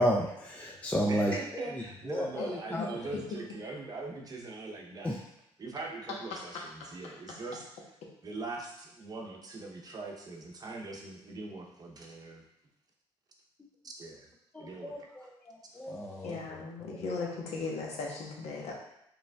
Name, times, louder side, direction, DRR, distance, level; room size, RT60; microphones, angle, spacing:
voice 1, 0.0-1.4 2.1-2.8 5.0-5.1 14.8-15.0 15.5-16.3, equal, 10° left, -1 dB, 0.4 m, -31 dB
voice 2, 1.1-5.3 5.6-7.7 8.2-12.4 13.8-14.3 14.6-15.1, right 3 dB, 35° right, 0 dB, 0.7 m, -41 dB
voice 3, 2.8-3.1 6.3-7.4 16.2-18.8, left 4 dB, 70° left, -1 dB, 0.9 m, -38 dB
5.0 x 3.2 x 2.3 m, 0.80 s
cardioid pair, 115°, 11 cm